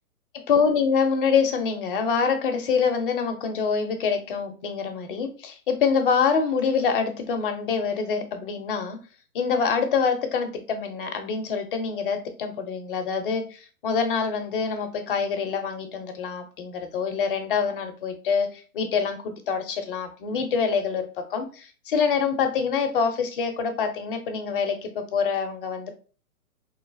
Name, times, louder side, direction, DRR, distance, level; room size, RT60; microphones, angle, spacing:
voice 1, 0.3-9.0 9.3-25.9, left 6 dB, 35° left, 5 dB, 0.7 m, -25 dB
4.2 x 3.1 x 2.5 m, 0.38 s
hypercardioid pair, 140°, 45 cm